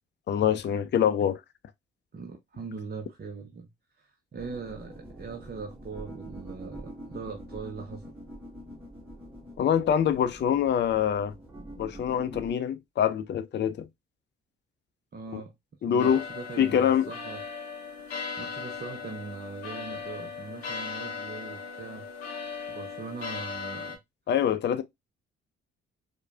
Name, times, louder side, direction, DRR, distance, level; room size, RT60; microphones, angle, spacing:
voice 1, 0.3-1.4 9.6-11.3 11.8-13.9 15.3-15.4 15.8-16.2 16.6-17.1 24.3-24.8, left 9 dB, 35° left, 0.5 m, -25 dB
voice 2, 2.1-3.7 4.0-8.1 15.1-15.5 15.9-17.4 18.4-22.1 22.7-24.0, right 4 dB, 30° right, 0.8 m, -40 dB
sound 1, 4.4-12.5, right 1 dB, 5° right, 2.3 m, -45 dB
sound 2, 16.0-24.0, left 5 dB, 90° left, 0.6 m, -38 dB
4.7 x 2.3 x 2.4 m
figure-of-eight pair, 40°, 31 cm